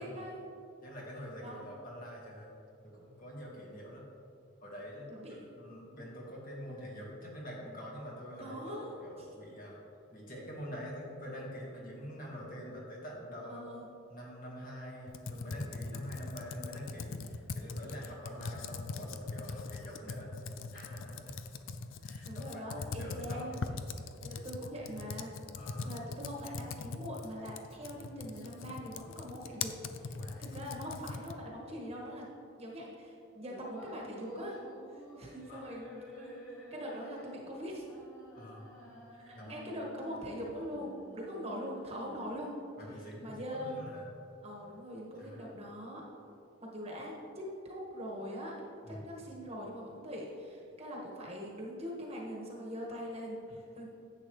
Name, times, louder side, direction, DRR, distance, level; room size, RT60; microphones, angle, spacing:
voice 1, 0.0-0.6 1.4-1.7 5.1-5.5 8.4-9.0 13.4-13.9 22.3-23.6 24.2-25.3 25.8-29.7 30.0-32.3 32.6-34.6 34.9-36.4 36.7-37.9 39.1-42.5 43.2-43.8 44.4-46.0 46.6-48.6 48.9-53.9, equal, 30° right, -3 dB, 1.5 m, -42 dB
voice 2, 0.8-2.5 2.8-4.1 4.6-8.6 9.0-9.8 10.1-13.7 14.1-21.4 22.0-23.7 25.6-25.9 30.1-30.5 35.5-35.7 38.4-38.7 39.3-39.6 42.8-44.1 45.2-45.4 48.8-49.1, equal, 45° left, -3 dB, 1.8 m, -46 dB
Computer keyboard, 15.1-31.5, left 4 dB, 75° left, 0.5 m, -41 dB
sound 1, 33.5-42.5, equal, 15° left, 1.8 m, -51 dB
10.5 x 8.0 x 3.2 m, 2.6 s
head